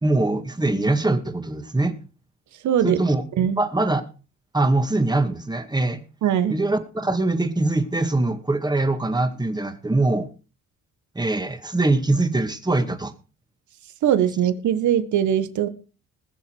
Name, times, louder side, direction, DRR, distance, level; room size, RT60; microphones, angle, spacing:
voice 1, 0.0-2.0 2.8-3.2 3.6-4.0 4.5-6.0 6.5-10.3 11.2-13.1, right 2 dB, 15° right, 8 dB, 2.1 m, -22 dB
voice 2, 2.6-3.0 3.4-3.6 6.2-6.5 14.0-15.7, right 10 dB, 75° right, 12 dB, 1.6 m, -21 dB
20.5 x 7.1 x 4.8 m, 0.35 s
cardioid pair, 90°, 30 cm